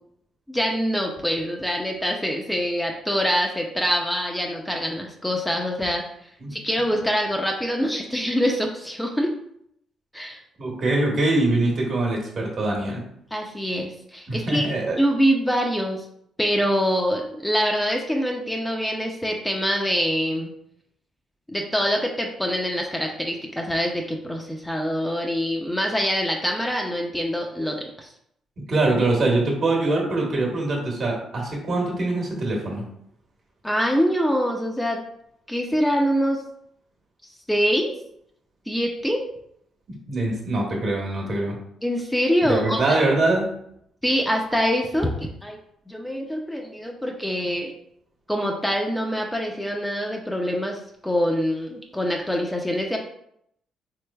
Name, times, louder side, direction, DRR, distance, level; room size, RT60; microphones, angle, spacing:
voice 1, 0.5-6.0 6.5-9.3 10.1-10.4 13.3-14.7 15.0-16.1 16.4-20.5 21.5-28.1 33.6-35.0 35.5-36.4 37.5-37.9 38.7-39.2 41.8-42.8 44.0-45.6 45.9-47.7 48.3-53.0, equal, 5° left, 1 dB, 0.4 m, -24 dB
voice 2, 10.6-13.0 14.3-15.0 28.6-32.8 39.9-41.5 42.5-43.5, right 2 dB, 55° right, -1 dB, 1.1 m, -23 dB
3.2 x 3.1 x 2.2 m, 0.72 s
cardioid pair, 90°, 0 cm